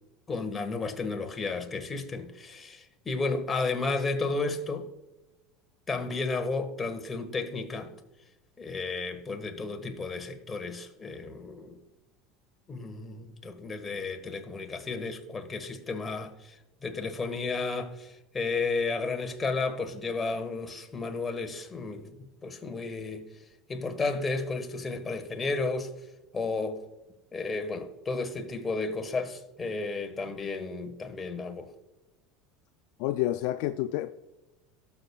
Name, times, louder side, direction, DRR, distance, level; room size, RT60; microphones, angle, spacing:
voice 1, 0.3-4.9 5.9-7.9 8.6-11.8 12.7-16.6 16.8-22.1 22.4-23.3 23.7-25.9 26.3-26.8 27.3-31.7, left 3 dB, 25° left, 1.5 m, -33 dB
voice 2, 33.0-34.1, left 14 dB, 65° left, 0.4 m, -29 dB
17.5 x 7.1 x 2.3 m
hypercardioid pair, 80°, 0 cm